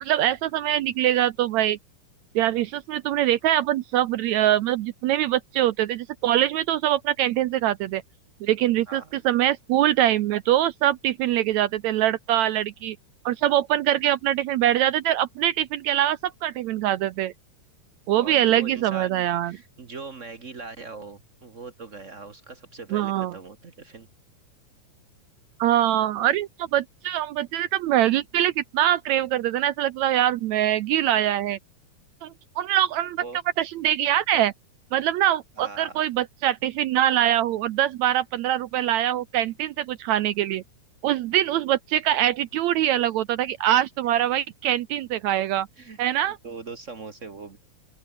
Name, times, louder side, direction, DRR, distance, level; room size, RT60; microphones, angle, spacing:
voice 1, 0.0-1.8 2.4-8.0 8.4-13.0 13.3-17.3 18.1-19.5 22.9-23.4 25.6-31.6 32.2-33.2 33.6-34.5 34.9-40.6 41.0-45.7 46.0-46.4, right 12 dB, 75° right, 1.8 m, -23 dB
voice 2, 18.1-24.1 33.2-33.4 35.6-36.0 45.8-47.6, right 4 dB, 55° right, 0.8 m, -41 dB
open air
omnidirectional pair, 3.8 m